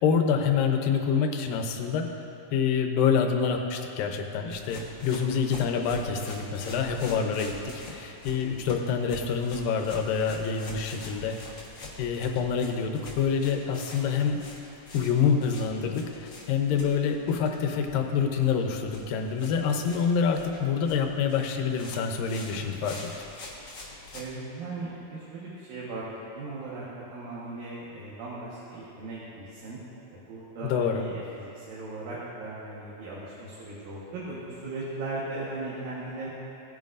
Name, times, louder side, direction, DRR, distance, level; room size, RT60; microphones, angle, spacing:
voice 1, 0.0-2.1 2.5-11.4 12.0-14.4 14.9-23.1 30.6-31.1, left 6 dB, 80° left, 4 dB, 2.4 m, -26 dB
sound 1, 4.5-24.3, left 3 dB, 55° left, 1.2 m, -46 dB
voice 2, 6.9-7.2 19.6-19.7 24.1-26.0 26.3-26.8 27.1-29.8 30.1-36.3, right 2 dB, 75° right, -8 dB, 3.1 m, -38 dB
18.0 x 9.2 x 2.5 m, 2.9 s
omnidirectional pair, 4.1 m